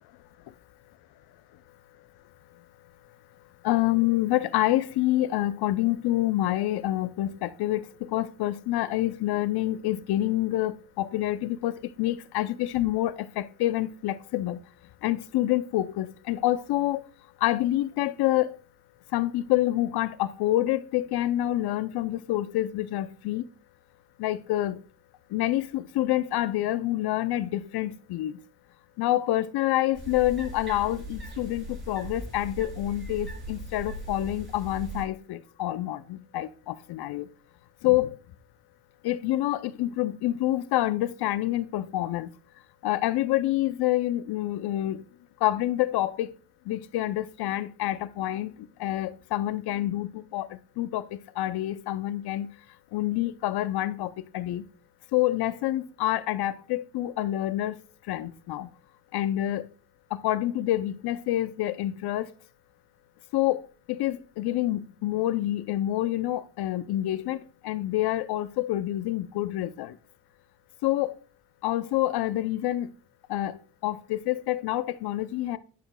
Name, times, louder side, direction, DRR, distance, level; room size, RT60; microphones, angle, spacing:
voice 1, 3.6-14.6 15.0-17.1 17.4-18.6 19.1-23.5 24.2-24.8 25.3-28.4 29.0-37.3 37.8-38.2 39.0-42.3 42.8-45.1 45.4-46.3 46.6-52.5 52.9-54.6 55.1-57.8 58.1-58.7 59.1-59.7 60.1-62.3 63.3-70.0 70.8-71.2 71.6-72.9 73.3-75.6, left 14 dB, 75° left, 0.6 m, -27 dB
sound 1, 29.9-35.0, right 1 dB, 30° right, 4.3 m, -39 dB
11.0 x 6.1 x 2.2 m
supercardioid pair, 65°, 38 cm